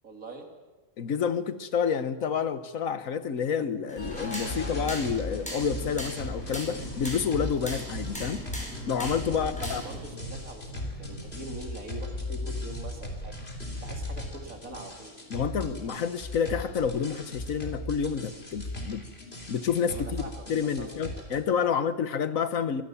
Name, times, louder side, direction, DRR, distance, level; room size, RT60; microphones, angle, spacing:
voice 1, 0.0-0.5 9.3-13.3 13.8-15.2 19.9-21.9, right 2 dB, 90° right, 3 dB, 3.5 m, -43 dB
voice 2, 1.0-8.4 8.9-9.8 15.3-19.1 19.5-22.8, left 7 dB, 80° left, 12 dB, 1.6 m, -29 dB
sound 1, 3.9-10.0, equal, 5° left, 5.4 m, -40 dB
sound 2, 4.0-21.4, left 1 dB, 50° left, 3.6 m, -37 dB
24.0 x 18.5 x 7.2 m, 1.3 s
omnidirectional pair, 1.4 m